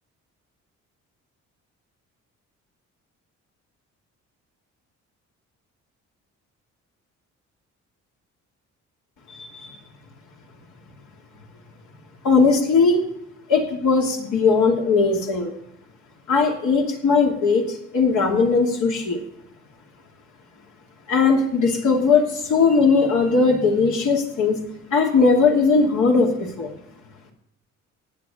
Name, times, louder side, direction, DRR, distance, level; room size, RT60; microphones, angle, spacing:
voice 1, 9.3-9.8 12.2-13.1 13.5-15.5 16.3-19.2 21.1-26.7, left 4 dB, 75° left, 0 dB, 2.9 m, -19 dB
16.0 x 9.9 x 3.9 m, 0.78 s
cardioid pair, 90°, 30 cm